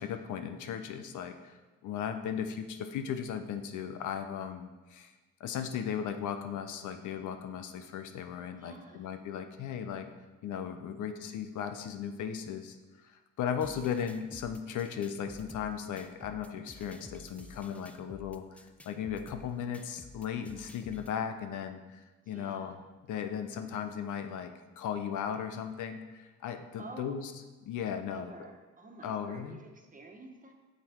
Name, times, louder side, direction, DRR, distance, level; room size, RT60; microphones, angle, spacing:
voice 1, 0.0-1.6 1.8-5.1 5.4-10.1 10.4-12.8 13.0-22.8 23.1-27.3 27.6-28.3 29.0-29.6, left 8 dB, 80° left, 8 dB, 0.8 m, -37 dB
voice 2, 8.5-9.2 11.0-11.2 13.7-14.0 22.2-22.8 26.8-27.2 28.0-30.5, right 3 dB, 25° right, 2 dB, 1.4 m, -50 dB
sound 1, 13.6-21.2, left 1 dB, 5° left, 0.5 m, -52 dB
8.3 x 6.8 x 4.5 m, 1.2 s
cardioid pair, 90°, 30 cm